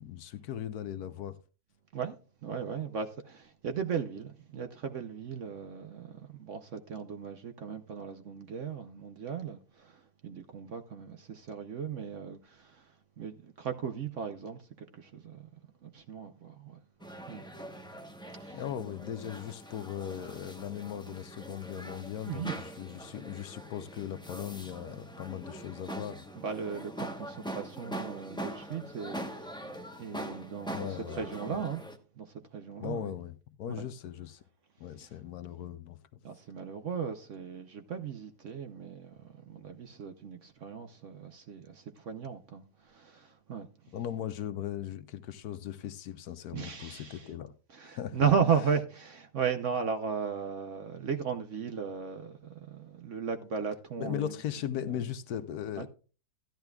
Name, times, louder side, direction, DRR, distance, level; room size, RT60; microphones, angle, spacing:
voice 1, 0.0-1.4 18.5-26.3 30.7-31.6 32.8-34.4 34.8-36.0 43.9-47.5 47.8-48.3 54.0-55.9, left 10 dB, 70° left, 1.1 m, -38 dB
voice 2, 2.4-12.8 13.2-15.4 15.8-16.8 17.3-17.4 18.4-18.6 22.3-22.6 26.4-29.6 30.0-30.9 31.2-31.8 32.2-32.3 32.5-33.1 35.0-35.1 36.2-42.6 42.9-43.7 46.5-47.3 47.7-54.3 54.8-55.0 55.8-55.9, right 6 dB, 60° right, 0.9 m, -36 dB
sound 1, 17.0-32.0, right 1 dB, 5° left, 0.5 m, -43 dB
14.0 x 10.5 x 2.3 m
omnidirectional pair, 1.8 m